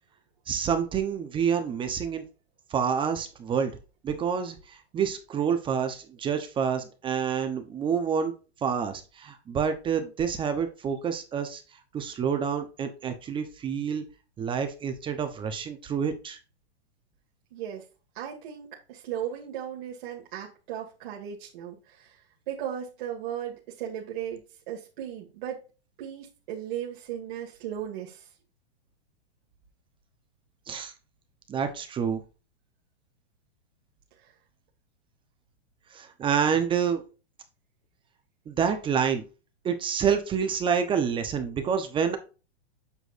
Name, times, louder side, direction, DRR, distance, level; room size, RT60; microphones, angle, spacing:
voice 1, 0.5-2.2 2.7-3.7 4.0-8.3 8.6-11.6 11.9-14.0 14.4-16.4 30.7-30.9 31.5-32.2 35.9-37.0 38.5-39.2 39.6-42.2, right 7 dB, 15° right, 7 dB, 0.9 m, -28 dB
voice 2, 17.5-17.8 18.1-25.6 26.0-28.3 34.2-34.3, right 10 dB, 50° right, -2 dB, 2.2 m, -36 dB
8.3 x 6.1 x 2.6 m, 0.32 s
hypercardioid pair, 150°, 31 cm